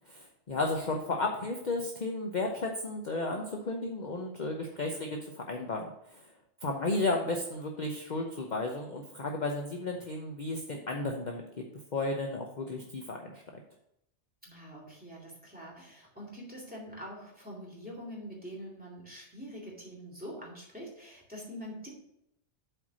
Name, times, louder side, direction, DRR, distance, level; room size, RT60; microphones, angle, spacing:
voice 1, 0.1-6.2 6.6-11.4 11.9-13.4, left 2 dB, 45° left, 2 dB, 0.9 m, -33 dB
voice 2, 6.8-7.2 14.4-21.9, equal, 5° right, -3 dB, 3.2 m, -45 dB
7.9 x 4.7 x 6.2 m, 0.80 s
omnidirectional pair, 1.2 m